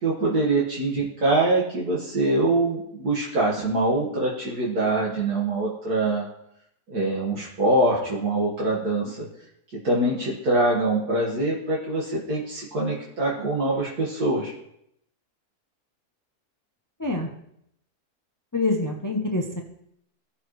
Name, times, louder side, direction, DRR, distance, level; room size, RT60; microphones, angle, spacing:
voice 1, 0.0-6.2 6.9-9.3 9.8-14.5, right 2 dB, 75° right, -5 dB, 2.2 m, -24 dB
voice 2, 18.5-19.6, left 2 dB, 20° left, 2 dB, 0.6 m, -25 dB
16.0 x 6.5 x 3.2 m, 0.76 s
omnidirectional pair, 1.7 m